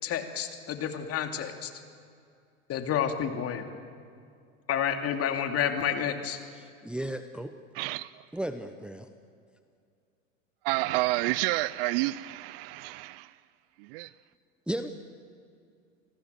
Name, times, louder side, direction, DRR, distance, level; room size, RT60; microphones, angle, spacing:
voice 1, 0.0-1.7 2.7-3.7 4.7-6.4, left 8 dB, 35° left, 6 dB, 2.6 m, -30 dB
voice 2, 6.5-7.5 8.3-9.1 14.7-14.9, right 1 dB, 5° right, 8 dB, 0.9 m, -35 dB
voice 3, 7.8-8.1 10.6-13.2 13.9-14.1, right 20 dB, 45° right, 19 dB, 0.6 m, -29 dB
27.5 x 19.0 x 7.0 m, 2.3 s
hypercardioid pair, 95°, 40 cm